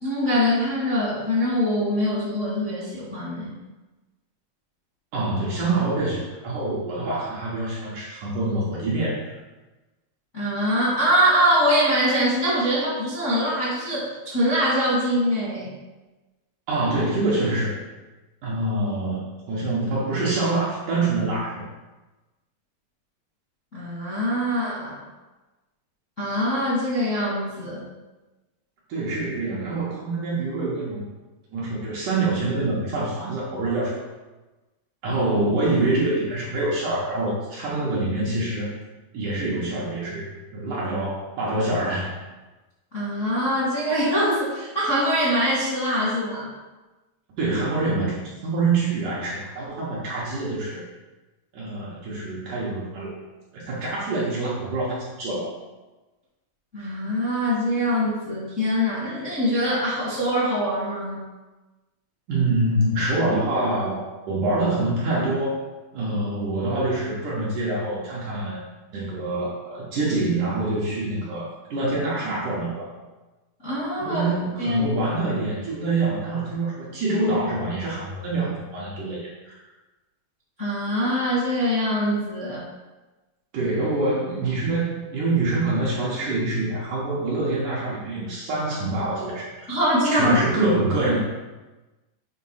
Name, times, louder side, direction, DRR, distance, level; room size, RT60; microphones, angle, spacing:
voice 1, 0.0-3.5 10.3-15.7 23.7-24.9 26.2-27.8 42.9-46.5 56.7-61.2 73.6-74.9 80.6-82.6 89.7-90.4, equal, 35° left, -8 dB, 1.2 m, -23 dB
voice 2, 5.1-9.2 16.7-17.8 18.4-21.6 28.9-31.1 31.5-33.9 35.0-38.7 39.1-42.1 47.4-50.8 51.5-53.2 53.5-55.5 62.3-65.6 65.9-68.7 68.9-72.9 74.0-79.6 83.5-89.7 90.1-91.2, right 2 dB, 65° right, -5 dB, 2.3 m, -25 dB
7.5 x 3.6 x 5.6 m, 1.2 s
omnidirectional pair, 4.7 m